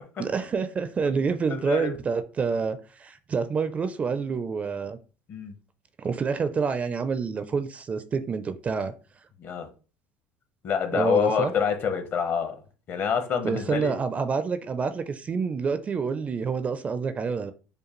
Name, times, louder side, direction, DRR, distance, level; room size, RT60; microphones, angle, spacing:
voice 1, 0.2-5.0 6.0-8.9 10.9-11.5 13.4-17.5, right 5 dB, 30° right, 0.4 m, -28 dB
voice 2, 1.5-1.9 5.3-5.5 9.4-9.7 10.6-12.5 12.9-14.0, left 7 dB, 45° left, 0.9 m, -26 dB
5.1 x 2.2 x 3.0 m
supercardioid pair, 105°, 5 cm